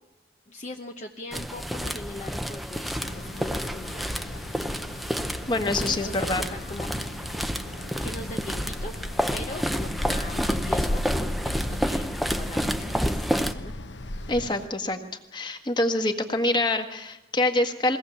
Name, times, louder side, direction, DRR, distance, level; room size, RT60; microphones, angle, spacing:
voice 1, 0.5-3.9 5.7-6.9 8.0-8.9 9.3-12.1 12.4-13.7, left 2 dB, 40° left, 3 dB, 0.9 m, -40 dB
sound 1, 1.3-13.5, equal, ahead, 0.7 m, -30 dB
sound 2, 3.0-14.7, left 1 dB, 85° left, 1.1 m, -36 dB
voice 2, 5.5-6.4 14.3-15.0 15.3-18.0, left 2 dB, 25° left, 6 dB, 1.6 m, -25 dB
22.5 x 17.5 x 7.2 m, 0.96 s
head